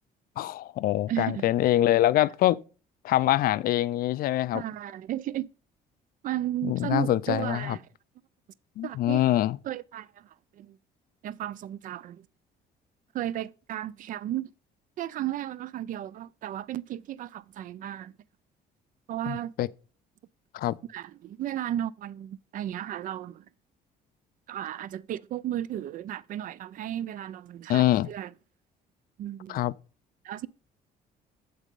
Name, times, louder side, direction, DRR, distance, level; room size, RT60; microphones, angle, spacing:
voice 1, 0.4-2.6 3.0-4.6 6.6-7.8 8.8-9.6 19.3-19.7 20.5-20.8 27.7-28.1 29.5-29.7, left 14 dB, 60° left, 0.4 m, -24 dB
voice 2, 1.1-1.5 4.5-5.5 6.2-7.8 8.8-9.3 9.6-10.8 11.2-12.3 13.1-14.5 15.0-18.1 19.1-19.5 20.9-23.5 24.5-28.3 29.2-29.7 30.2-30.5, right 12 dB, 55° right, 0.4 m, -34 dB
8.3 x 4.0 x 5.2 m
cardioid pair, 110°, 17 cm